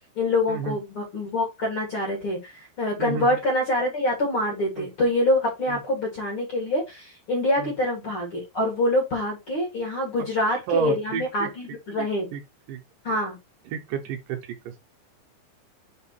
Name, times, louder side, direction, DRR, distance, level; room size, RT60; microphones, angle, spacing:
voice 1, 0.2-12.3 13.0-13.4, left 1 dB, 45° left, 2.0 m, -25 dB
voice 2, 3.0-3.4 4.8-4.9 5.7-5.8 7.6-7.7 10.7-11.5 12.0-12.4 12.7-12.8 13.7-14.4 14.7-14.8, right 7 dB, 75° right, 2.2 m, -30 dB
4.8 x 4.5 x 4.4 m
omnidirectional pair, 4.3 m